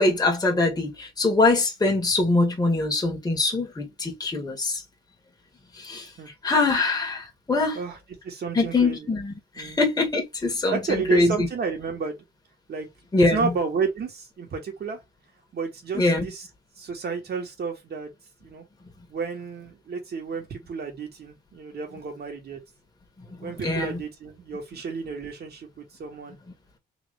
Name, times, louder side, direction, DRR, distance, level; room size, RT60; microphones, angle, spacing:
voice 1, 0.0-4.8 5.8-6.1 6.4-7.8 8.5-11.3 13.1-13.5 15.9-16.3 23.4-24.0, left 2 dB, 20° left, 1.7 m, -23 dB
voice 2, 8.2-9.1 9.6-9.8 10.7-12.2 12.7-12.9 13.3-15.0 15.5-16.5 16.8-18.1 18.4-18.6 19.1-22.6 23.4-26.4, right 5 dB, 55° right, 2.1 m, -31 dB
4.0 x 3.0 x 3.2 m
cardioid pair, 90°, 20 cm